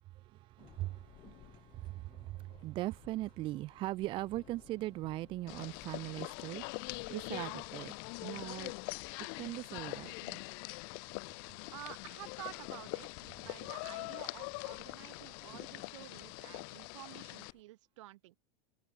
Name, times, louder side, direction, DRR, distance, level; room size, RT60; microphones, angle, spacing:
voice 1, 0.1-7.9 8.2-8.7 9.4-10.4, right 17 dB, 30° right, 1.0 m, -40 dB
Thunder, 0.6-17.6, left 13 dB, 30° left, 2.9 m, -62 dB
sound 1, 5.5-17.5, left 34 dB, 45° left, 0.5 m, -43 dB
voice 2, 11.7-18.4, right 17 dB, 70° right, 3.0 m, -51 dB
supercardioid pair, 160°, 16 cm